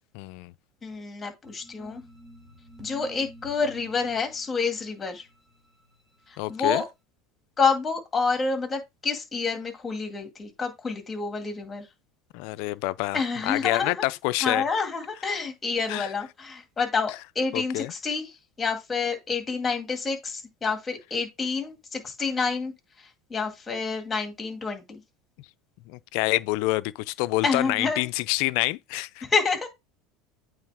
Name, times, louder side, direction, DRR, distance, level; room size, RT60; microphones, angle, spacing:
voice 1, 0.1-0.5 6.4-6.8 12.3-13.2 13.5-14.6 15.9-16.1 17.5-17.9 25.9-29.2, left 20 dB, 70° left, 0.4 m, -27 dB
voice 2, 0.8-2.0 2.8-5.3 6.3-6.9 7.6-11.9 13.1-14.0 14.4-25.0 27.4-28.1 29.2-29.7, left 4 dB, 20° left, 2.3 m, -28 dB
sound 1, 1.4-6.6, equal, 20° right, 3.1 m, -50 dB
8.8 x 3.2 x 3.6 m
supercardioid pair, 115°, 0 cm